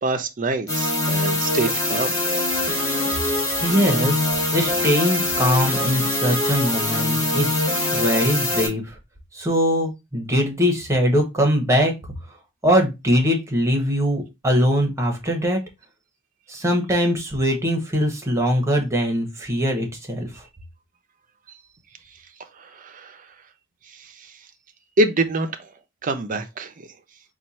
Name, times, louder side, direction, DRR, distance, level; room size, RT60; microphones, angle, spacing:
voice 1, 0.0-2.2 22.8-23.1 25.0-25.6 26.0-26.7, right 2 dB, 40° right, 0.6 m, -24 dB
sound 1, 0.7-8.7, left 1 dB, 15° left, 1.4 m, -23 dB
voice 2, 3.6-4.2 4.5-7.6 7.9-8.9 9.3-11.9 12.6-15.6 16.5-20.3, equal, 15° right, 1.1 m, -21 dB
4.4 x 2.4 x 4.2 m
head